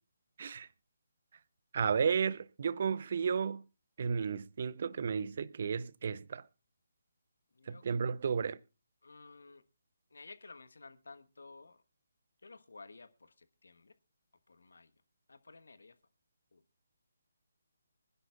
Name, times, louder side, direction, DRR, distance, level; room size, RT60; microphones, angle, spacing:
voice 1, 1.7-3.6 4.0-6.4 7.7-8.6, right 6 dB, 50° right, 0.7 m, -33 dB
voice 2, 9.0-9.6 10.1-11.8 12.4-13.9 14.5-14.9 15.3-15.9 16.5-16.6, left 3 dB, 70° left, 1.3 m, -54 dB
24.5 x 11.0 x 2.4 m
figure-of-eight pair, 145°, 0 cm